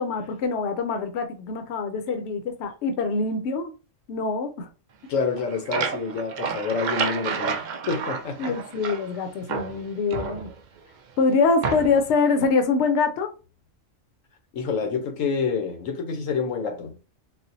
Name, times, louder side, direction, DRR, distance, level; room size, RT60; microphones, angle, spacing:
voice 1, 0.0-3.7 4.1-4.7 8.4-10.5 11.2-13.3, left 4 dB, 65° left, 0.9 m, -24 dB
voice 2, 5.1-7.6 7.9-8.5 14.5-17.0, left 5 dB, 90° left, 1.2 m, -27 dB
sound 1, 5.2-9.2 9.5-10.8 11.6-12.1, right 5 dB, 70° right, 0.4 m, -30 dB
4.2 x 2.1 x 2.6 m
omnidirectional pair, 1.3 m